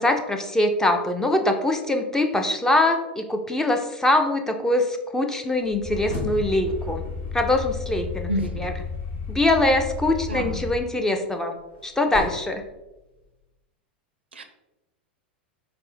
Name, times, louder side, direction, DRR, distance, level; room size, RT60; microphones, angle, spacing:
voice 1, 0.0-7.0 7.3-8.3 8.6-8.7 9.3-11.6 11.8-12.6, left 1 dB, 10° left, 5 dB, 0.4 m, -23 dB
sound 1, 5.5-8.7 10.9-13.4, left 2 dB, 60° left, 0.9 m, -39 dB
sound 2, 5.8-10.8, left 5 dB, 35° left, 0.9 m, -33 dB
voice 2, 8.3-8.7 10.3-10.6 14.3-14.4, equal, 80° right, 7 dB, 0.4 m, -29 dB
4.2 x 2.1 x 4.1 m, 1.0 s
figure-of-eight pair, 90°, 6 cm